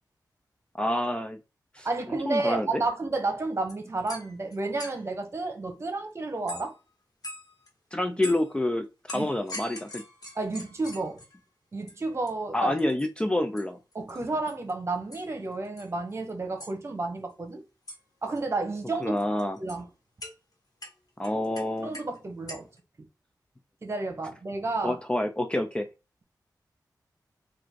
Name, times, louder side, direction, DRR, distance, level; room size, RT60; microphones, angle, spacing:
voice 1, 0.7-1.4 1.7-1.9 2.2-2.8 7.9-10.0 12.5-13.8 19.0-19.6 21.2-21.9 24.8-25.9, left 1 dB, 15° left, 0.4 m, -28 dB
voice 2, 1.8-6.7 9.1-9.3 10.4-11.2 11.7-12.7 13.9-17.6 18.2-19.2 19.6-19.8 21.8-22.7 23.8-25.0, right 3 dB, 35° right, 1.1 m, -31 dB
sound 1, 3.7-5.1 6.5-6.8 7.2-7.7 8.2-8.5 9.1-11.4 11.9-12.0 12.3-12.4 12.7-13.1 13.6-13.7 13.9-14.2 14.5-14.7 15.1-15.3 15.6-16.3 16.6-16.7 17.9-18.0 18.2-18.4 19.0-19.8 20.2-20.3 20.8-22.2 22.5-22.8, left 1 dB, 55° left, 1.4 m, -42 dB
3.7 x 2.6 x 4.5 m
wide cardioid pair, 110°, 7 cm